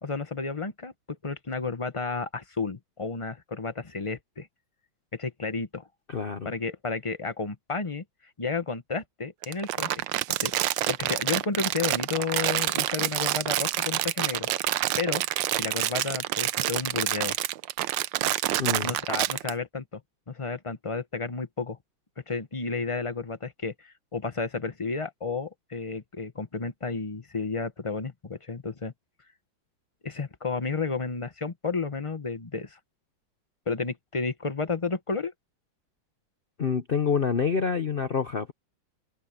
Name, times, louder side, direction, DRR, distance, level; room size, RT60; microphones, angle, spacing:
voice 1, 0.0-4.5 5.1-5.8 6.4-8.0 8.4-9.9 10.4-10.5 10.9-15.2 15.5-17.4 18.8-20.0 20.3-21.8 22.3-28.9 30.0-32.8 33.7-35.3, left 4 dB, 25° left, 0.6 m, -32 dB
voice 2, 6.1-6.5 18.6-18.9 36.6-38.5, left 6 dB, 80° left, 0.5 m, -27 dB
Crumpling crinkling, 9.4-19.5, right 14 dB, 75° right, 1.3 m, -27 dB
omnidirectional pair, 2.2 m